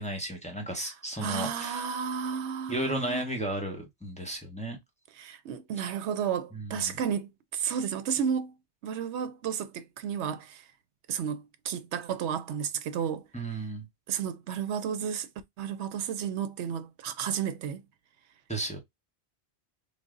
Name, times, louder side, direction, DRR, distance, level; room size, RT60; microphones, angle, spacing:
voice 1, 0.0-1.8 2.7-4.8 6.5-6.9 13.3-13.9 18.5-18.8, right 1 dB, 5° left, 0.8 m, -34 dB
voice 2, 1.2-3.2 5.2-8.6 8.8-10.6 11.1-13.3 14.1-15.3 15.6-17.8, right 8 dB, 85° right, 0.9 m, -32 dB
3.4 x 2.1 x 3.7 m
omnidirectional pair, 1.1 m